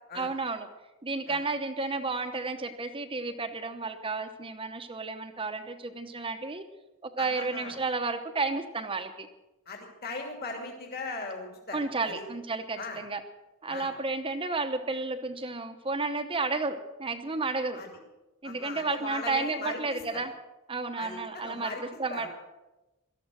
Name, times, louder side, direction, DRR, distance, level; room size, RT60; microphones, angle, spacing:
voice 1, 0.1-0.7 1.0-6.6 7.0-9.3 11.7-13.2 13.6-17.8 18.4-20.3 20.7-22.3, right 3 dB, 25° right, 6 dB, 1.0 m, -32 dB
voice 2, 7.2-7.7 9.7-12.2 12.8-13.0 13.7-13.9 17.7-17.9 18.4-20.2 21.0-21.8 22.1-22.3, left 3 dB, 45° left, 1 dB, 2.8 m, -39 dB
17.5 x 13.0 x 6.3 m, 1.0 s
head